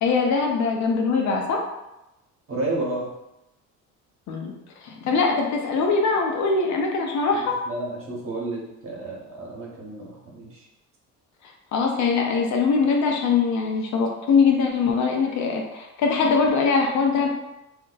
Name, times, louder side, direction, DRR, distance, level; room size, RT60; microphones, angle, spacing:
voice 1, 0.0-1.6 4.3-4.5 4.8-7.6 11.7-17.3, left 4 dB, 55° left, 0 dB, 0.6 m, -22 dB
voice 2, 2.5-3.1 7.3-10.6, right 2 dB, 40° right, -3 dB, 1.0 m, -31 dB
2.5 x 2.1 x 3.8 m, 0.93 s
cardioid pair, 110°, 33 cm